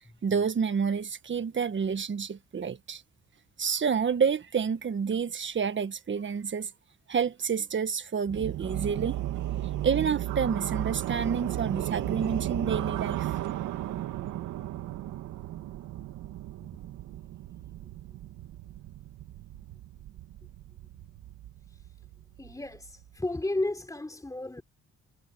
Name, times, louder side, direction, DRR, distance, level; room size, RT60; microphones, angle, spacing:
voice 1, 0.2-3.0 3.6-6.7 7.1-9.2 9.8-13.3, right 6 dB, 40° right, 1.5 m, -29 dB
sound 1, 8.3-23.2, right 13 dB, 85° right, 2.2 m, -35 dB
voice 2, 22.4-24.6, left 2 dB, 10° left, 3.3 m, -33 dB
cardioid pair, 90°, 30 cm